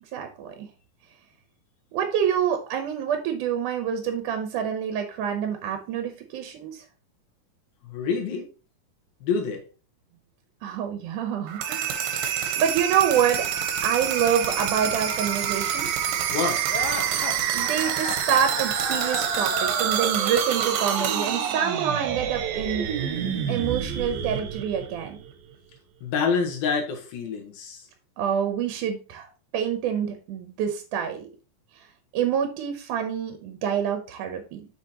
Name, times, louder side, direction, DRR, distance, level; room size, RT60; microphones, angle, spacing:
voice 1, 0.1-0.7 1.9-6.8 10.6-12.0 12.3-13.5 13.8-15.9 17.1-22.9 23.5-25.2 28.2-29.3 29.5-31.3 32.1-34.7, right 8 dB, 70° right, 6 dB, 2.2 m, -27 dB
voice 2, 7.8-8.5 9.2-9.6 16.3-16.6 26.0-27.9, left 5 dB, 90° left, 1 dB, 3.2 m, -27 dB
sound 1, 11.5-25.3, right 8 dB, 90° right, 2.7 m, -27 dB
sound 2, 16.7-20.2, left 6 dB, 65° left, 2.4 m, -35 dB
8.1 x 5.7 x 2.9 m, 0.34 s
omnidirectional pair, 4.1 m